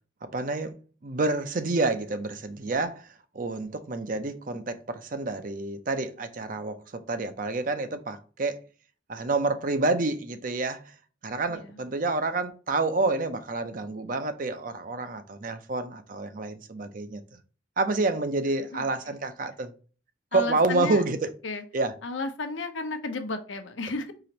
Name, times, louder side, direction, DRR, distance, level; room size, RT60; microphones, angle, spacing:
voice 1, 0.3-0.7 1.0-3.1 3.3-8.6 9.1-10.9 11.2-17.2 17.8-19.7 20.3-21.3 21.7-21.9, right 3 dB, 45° right, 0.5 m, -28 dB
voice 2, 11.5-11.8 18.7-19.1 20.3-21.0 21.4-21.6 22.0-24.1, left 3 dB, 80° left, 0.8 m, -33 dB
4.8 x 3.0 x 2.8 m
head